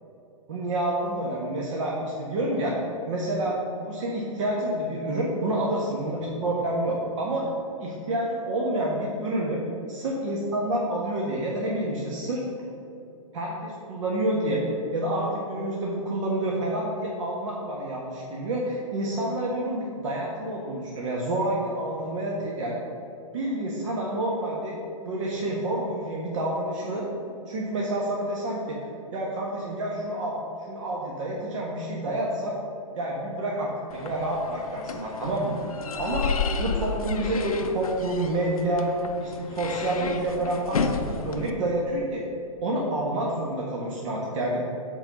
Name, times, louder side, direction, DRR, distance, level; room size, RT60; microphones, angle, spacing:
voice 1, 0.5-2.7 3.1-7.4 7.8-9.6 9.9-12.4 13.3-14.6 14.9-22.8 23.3-27.0 27.5-28.8 29.1-30.4 30.7-32.6 33.0-35.6 36.0-36.3 36.6-38.9 39.2-42.2 42.6-44.6, right 1 dB, 60° right, -3 dB, 1.4 m, -28 dB
sound 1, 33.9-41.5, left 5 dB, 85° left, 0.7 m, -32 dB
8.0 x 4.1 x 6.8 m, 2.7 s
hypercardioid pair, 120°, 18 cm